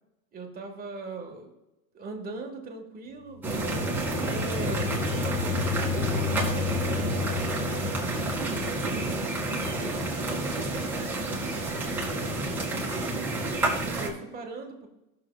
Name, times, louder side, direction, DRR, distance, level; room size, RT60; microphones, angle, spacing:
voice 1, 0.3-1.5 1.9-10.8 12.0-13.2 13.6-14.9, right 3 dB, 20° right, 2 dB, 1.5 m, -41 dB
sound 1, 3.3-9.0, left 13 dB, 25° left, 0.8 m, -34 dB
sound 2, 3.4-14.1, right 2 dB, 5° right, 2.1 m, -29 dB
15.0 x 6.7 x 2.3 m, 0.95 s
supercardioid pair, 130°, 40 cm